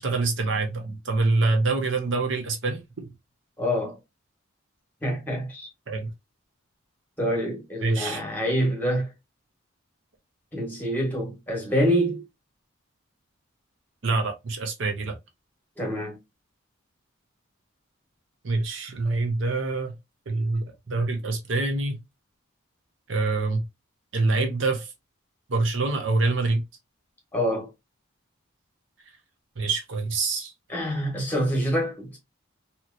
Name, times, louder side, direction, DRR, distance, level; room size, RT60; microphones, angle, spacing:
voice 1, 0.0-3.1 5.9-6.1 7.8-8.2 14.0-15.2 18.4-19.9 20.3-22.0 23.1-23.6 24.1-24.9 25.5-26.6 29.6-30.5, right 3 dB, 60° right, 0.6 m, -25 dB
voice 2, 3.6-4.0 5.0-5.7 7.2-9.1 10.5-12.2 15.8-16.2 27.3-27.7 30.7-32.2, equal, 10° left, 1.2 m, -26 dB
2.8 x 2.8 x 2.5 m
head